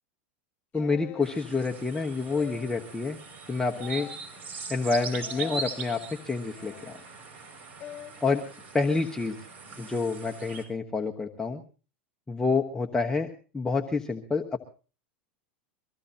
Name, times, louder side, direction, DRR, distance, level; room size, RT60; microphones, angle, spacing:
sound 1, 0.7-1.3 2.2-2.8 3.7-4.2 5.1-5.7 6.6-7.0 7.8-8.1, left 11 dB, 30° left, 4.0 m, -44 dB
voice 1, 0.7-3.2 3.5-4.1 4.7-6.0 6.2-6.9 8.2-8.4 8.7-9.4 9.8-11.6 12.3-13.3 13.5-14.6, left 4 dB, 10° left, 1 dB, 1.2 m, -28 dB
sound 2, 1.2-10.6, right 5 dB, 35° right, 6.2 m, -41 dB
24.0 x 15.0 x 2.9 m, 0.36 s
hypercardioid pair, 105°, 6 cm